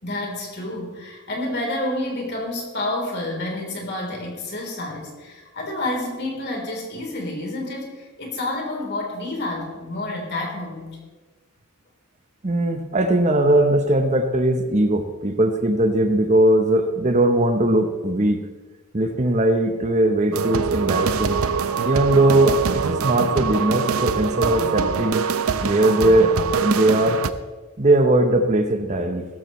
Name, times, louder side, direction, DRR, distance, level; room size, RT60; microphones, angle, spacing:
voice 1, 0.0-11.0, left 1 dB, 50° left, 0 dB, 3.6 m, -29 dB
voice 2, 12.4-18.4 18.9-21.4 21.8-25.2 25.6-27.2 27.8-29.3, right 1 dB, 35° right, 7 dB, 0.8 m, -19 dB
sound 1, 20.3-27.3, right 6 dB, 75° right, 0.6 m, -23 dB
16.5 x 14.0 x 3.1 m, 1.3 s
head